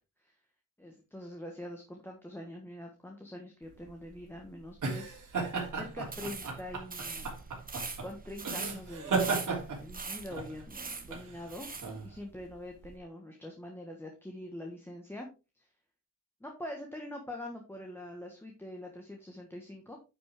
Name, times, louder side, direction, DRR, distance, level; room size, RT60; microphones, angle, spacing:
voice 1, 0.8-5.2 5.7-7.3 8.0-9.5 9.8-15.3 15.5-15.7 16.4-20.0, left 1 dB, 5° left, 1 dB, 1.4 m, -44 dB
sound 1, 3.7-12.9, right 4 dB, 75° right, 3.3 m, -36 dB
sound 2, 6.0-11.9, right 4 dB, 25° right, 1.2 m, -42 dB
9.9 x 6.1 x 3.6 m, 0.29 s
wide cardioid pair, 175°, 31 cm